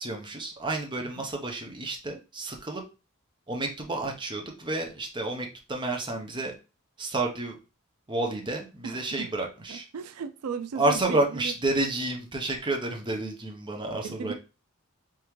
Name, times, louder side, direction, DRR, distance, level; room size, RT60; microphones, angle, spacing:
voice 1, 0.0-2.8 3.5-6.5 7.0-7.6 8.1-9.9 10.8-14.3, right 2 dB, 20° right, 0.7 m, -30 dB
voice 2, 8.8-9.3 9.7-11.5 14.0-14.3, right 6 dB, 90° right, 0.4 m, -36 dB
3.5 x 3.5 x 3.0 m
head